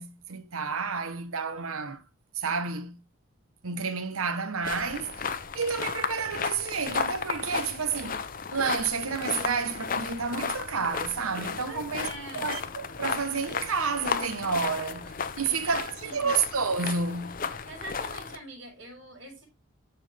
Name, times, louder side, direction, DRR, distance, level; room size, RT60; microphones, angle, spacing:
voice 1, 0.0-2.0 2.3-3.0 3.6-8.3 8.5-12.1 12.3-17.4, right 5 dB, 80° right, 1.2 m, -30 dB
sound 1, 4.6-18.4, left 5 dB, 40° left, 0.7 m, -34 dB
voice 2, 11.7-12.5 15.5-16.3 17.7-19.5, right 1 dB, 60° right, 5.5 m, -44 dB
13.0 x 4.5 x 3.4 m
head